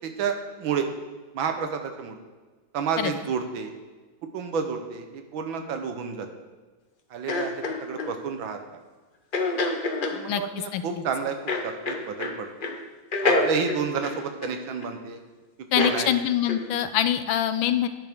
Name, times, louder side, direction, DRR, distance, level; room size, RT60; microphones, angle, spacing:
voice 1, 0.0-0.9 1.3-2.2 2.7-3.7 4.3-6.3 7.1-8.6 10.1-11.4 11.6-12.5 13.2-15.2 15.8-16.1, right 6 dB, 80° right, 6 dB, 1.7 m, -30 dB
sound 1, 7.3-8.1 9.3-10.2 11.5-12.4 12.6-12.8 13.1-14.9 15.8-16.0 16.5-16.7, left 3 dB, 45° left, 0.6 m, -27 dB
voice 2, 15.7-17.9, left 11 dB, 90° left, 11 dB, 1.4 m, -24 dB
11.0 x 9.1 x 3.6 m, 1.3 s
omnidirectional pair, 2.1 m